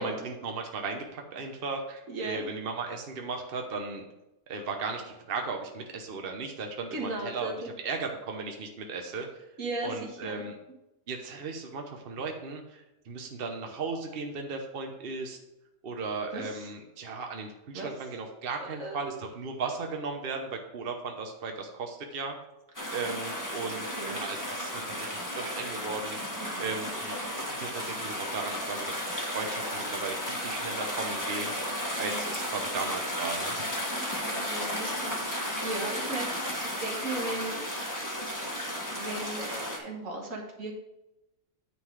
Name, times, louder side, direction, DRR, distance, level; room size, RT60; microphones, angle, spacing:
voice 1, 0.0-4.0 4.5-7.5 7.8-9.3 9.8-10.6 11.1-15.4 15.8-22.4 22.9-26.2 26.6-29.1 29.3-31.5 32.0-33.6, right 4 dB, 50° right, 3 dB, 1.1 m, -36 dB
voice 2, 2.1-2.4 6.9-7.5 9.6-10.4 16.3-16.7 17.7-17.9 18.6-19.1 23.9-24.2 26.4-26.8 31.9-32.3 33.9-37.9 39.0-40.7, right 2 dB, 80° right, 0 dB, 1.9 m, -37 dB
sound 1, 22.7-39.8, equal, 15° left, 1.4 m, -34 dB
9.8 x 3.9 x 6.1 m, 0.93 s
omnidirectional pair, 1.4 m